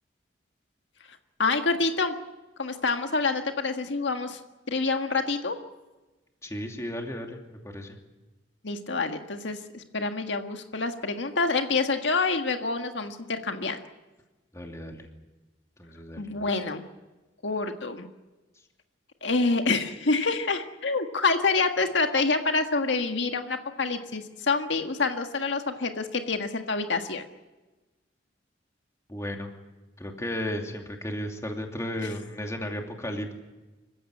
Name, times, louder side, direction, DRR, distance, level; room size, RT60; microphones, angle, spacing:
voice 1, 1.4-2.1 2.6-4.4 4.7-5.6 8.6-13.8 16.2-16.8 17.4-18.1 19.2-27.2, left 3 dB, 80° left, 6 dB, 1.7 m, -27 dB
voice 2, 6.4-8.0 14.5-15.1 15.8-16.2 29.1-29.5 30.0-33.4, left 1 dB, 15° left, 2 dB, 2.8 m, -34 dB
26.5 x 15.5 x 9.8 m, 1.1 s
head